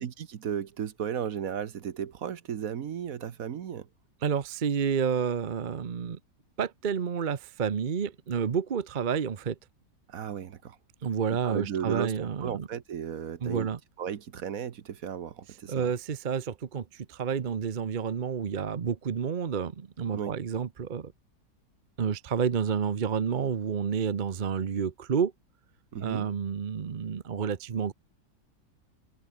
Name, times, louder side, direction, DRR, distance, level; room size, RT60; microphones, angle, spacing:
voice 1, 0.0-3.9 10.1-10.8 11.4-13.7 14.0-15.9 20.1-20.3 25.9-26.3, right 8 dB, 60° right, 1.4 m, -35 dB
voice 2, 4.2-6.2 6.6-9.6 11.0-12.7 13.4-13.8 15.7-21.1 22.0-25.3 26.0-27.9, right 7 dB, 40° right, 0.8 m, -30 dB
omnidirectional pair, 1.8 m